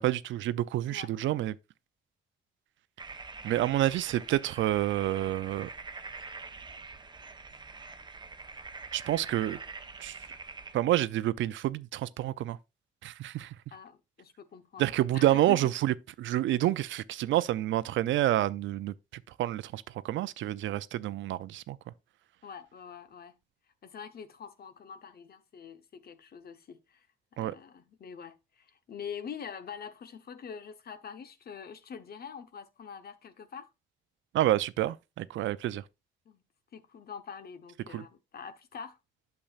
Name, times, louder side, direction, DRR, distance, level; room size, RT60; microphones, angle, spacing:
voice 1, 0.0-1.5 3.4-5.7 8.9-9.6 10.0-10.2 10.7-12.6 13.0-13.5 14.8-18.9 19.4-21.8 27.4-27.5 34.3-35.8 37.9-38.0, right 14 dB, 75° right, 0.5 m, -28 dB
sound 1, 3.0-10.7, right 4 dB, 20° right, 0.9 m, -45 dB
voice 2, 13.7-15.7 22.4-23.4 23.8-27.1 27.3-33.7 36.3-36.4 36.7-39.0, left 7 dB, 50° left, 1.0 m, -45 dB
8.6 x 6.9 x 2.4 m
cardioid pair, 90°, 20 cm